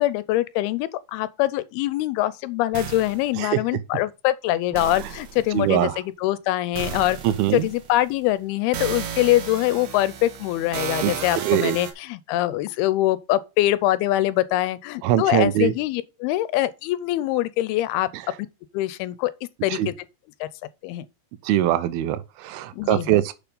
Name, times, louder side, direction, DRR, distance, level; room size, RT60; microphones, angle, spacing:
voice 1, 0.0-7.2 7.5-18.1 18.7-19.3 19.6-19.9 20.4-20.5 20.8-21.1 22.7-23.2, left 15 dB, 90° left, 2.6 m, -23 dB
sound 1, 2.7-3.3 4.7-5.5 6.8-8.1 8.7-11.9, right 7 dB, 60° right, 2.3 m, -33 dB
voice 2, 5.5-6.0 7.2-7.7 11.0-11.8 15.0-15.7 18.1-18.2 19.7-19.9 21.4-23.3, right 13 dB, 80° right, 2.5 m, -22 dB
6.9 x 5.8 x 5.3 m
omnidirectional pair, 4.4 m